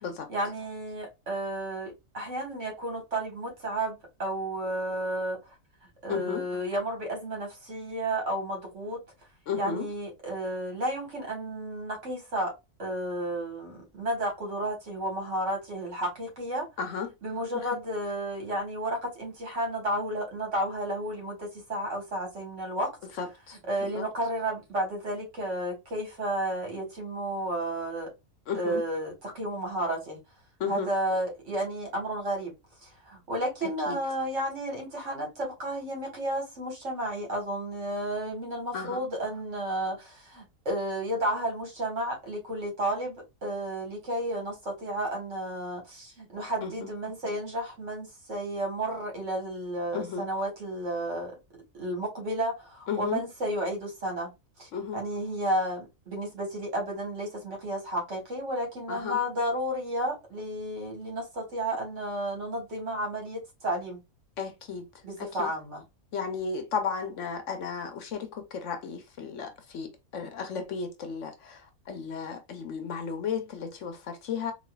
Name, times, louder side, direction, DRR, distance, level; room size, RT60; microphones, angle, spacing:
voice 1, 0.3-5.4 6.0-9.0 9.5-12.5 12.8-16.7 17.2-22.9 23.7-28.1 28.5-30.2 30.7-32.5 32.8-51.3 51.7-54.3 54.6-64.0 65.0-65.8, right 1 dB, 60° right, 1.7 m, -32 dB
voice 2, 6.1-6.4 9.5-9.9 16.8-17.1 17.5-17.7 23.2-24.1 28.5-28.8 30.6-30.9 33.6-34.0 38.7-39.0 46.6-46.9 49.9-50.3 52.9-53.2 54.7-55.0 58.9-59.2 64.4-64.9 65.2-65.5 66.1-74.5, left 6 dB, 65° left, 1.0 m, -34 dB
4.1 x 2.6 x 2.2 m
omnidirectional pair, 1.5 m